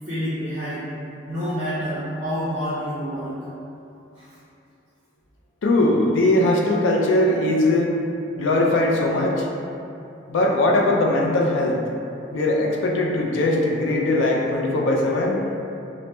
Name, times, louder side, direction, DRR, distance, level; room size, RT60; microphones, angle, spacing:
voice 1, 0.1-0.8 1.2-3.3 4.2-4.3, equal, 40° right, -11 dB, 0.5 m, -28 dB
voice 2, 5.6-7.9 8.4-9.5 10.3-11.8 12.3-15.4, left 1 dB, 80° left, 0 dB, 0.4 m, -20 dB
2.9 x 2.0 x 3.2 m, 2.7 s
head